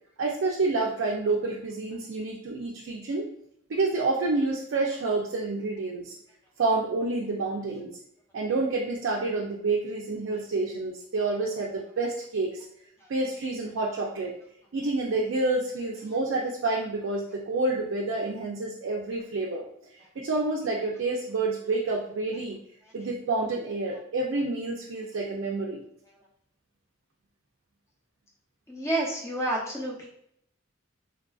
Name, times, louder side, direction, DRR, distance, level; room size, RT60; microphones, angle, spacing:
voice 1, 0.2-3.3 3.7-6.1 6.6-7.9 8.3-12.6 13.1-14.3 14.7-19.6 20.2-22.6 22.9-25.8, right 3 dB, 80° right, -2 dB, 0.4 m, -28 dB
voice 2, 28.7-30.1, right 1 dB, 15° left, -4 dB, 0.7 m, -29 dB
3.2 x 2.4 x 2.3 m, 0.72 s
head